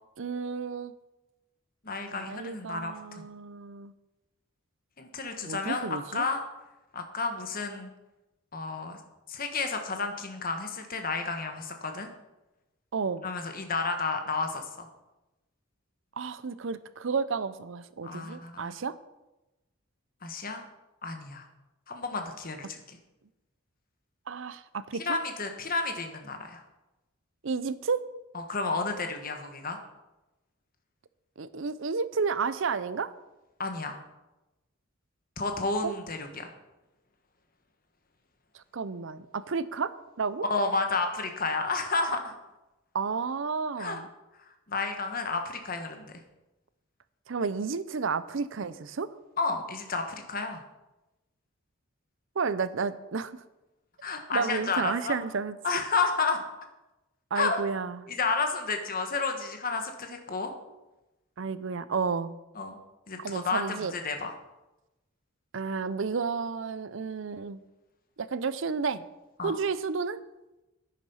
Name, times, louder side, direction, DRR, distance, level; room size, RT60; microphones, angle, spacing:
voice 1, 0.2-0.9 2.1-3.9 5.4-6.3 12.9-13.3 16.2-18.9 24.3-25.2 27.4-28.0 31.4-33.1 35.8-36.0 38.5-40.5 42.9-44.1 47.3-49.1 52.4-53.3 54.3-55.6 57.3-58.0 61.4-62.4 63.2-63.9 65.5-67.6 68.2-69.0 69.4-70.2, right 5 dB, 65° right, 15 dB, 0.6 m, -31 dB
voice 2, 1.8-3.2 5.0-6.4 6.9-7.9 8.5-9.0 9.3-12.1 13.2-14.9 18.0-18.7 20.2-20.6 21.0-21.5 21.9-23.0 25.0-26.6 28.3-29.8 33.6-34.0 35.4-36.5 40.5-42.3 43.8-44.0 44.7-46.1 49.4-50.6 54.0-55.2 55.6-56.4 57.3-57.6 58.1-60.5 62.6-62.8 63.1-64.3 69.4-69.5, left 4 dB, 45° left, 5 dB, 1.4 m, -31 dB
10.5 x 9.2 x 5.6 m, 1.0 s
head